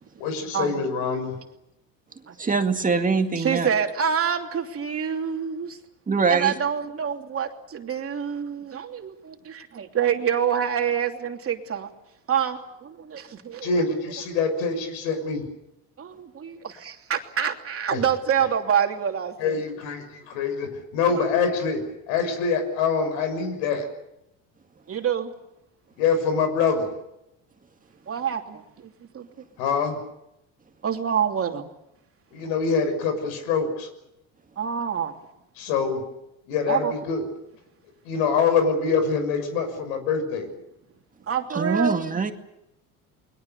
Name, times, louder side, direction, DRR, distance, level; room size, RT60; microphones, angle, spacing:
voice 1, 0.2-1.4 13.6-15.4 17.9-18.0 19.4-21.8 22.1-23.9 26.0-26.9 29.6-30.0 32.3-33.9 35.6-36.0 36.5-37.2 38.0-40.5, left 5 dB, 85° left, 8 dB, 6.5 m, -25 dB
voice 2, 2.4-3.7 6.1-6.5 41.6-42.3, right 4 dB, 20° right, 6 dB, 2.1 m, -23 dB
voice 3, 3.4-5.8 6.3-11.9 12.3-13.8 16.0-19.6 21.1-21.2 24.9-25.3 28.1-29.3 30.8-31.7 34.6-35.1 36.7-36.9 41.3-42.0, right 8 dB, 35° right, 4 dB, 2.9 m, -27 dB
29.5 x 22.0 x 6.8 m, 0.85 s
supercardioid pair, 110°, 38 cm